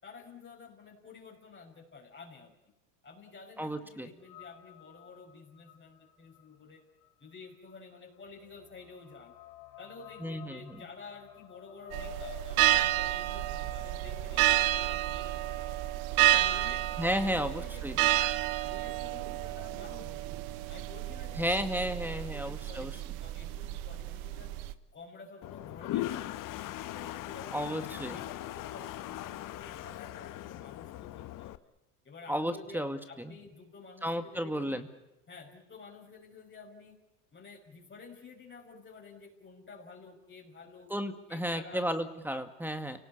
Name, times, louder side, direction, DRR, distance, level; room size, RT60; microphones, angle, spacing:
voice 1, 0.0-2.5 3.0-6.8 7.2-9.3 9.8-15.4 15.7-15.8 16.2-18.2 18.6-20.2 20.7-24.5 24.9-26.2 26.9-31.6 32.0-34.8 35.3-37.0 37.3-40.9 41.3-41.9, left 4 dB, 25° left, 0 dB, 5.6 m, -51 dB
voice 2, 3.6-4.1 10.2-10.8 17.0-18.0 21.4-22.9 27.5-28.2 32.3-33.3 34.0-34.9 40.9-43.0, equal, 5° right, 9 dB, 2.1 m, -33 dB
sound 1, 4.2-16.7, left 14 dB, 65° left, 2.4 m, -52 dB
sound 2, 11.9-24.7, right 15 dB, 65° right, 1.4 m, -30 dB
Toilet flush, 25.4-31.6, left 14 dB, 45° left, 1.2 m, -39 dB
30.0 x 18.5 x 8.5 m, 0.94 s
hypercardioid pair, 90°, 46 cm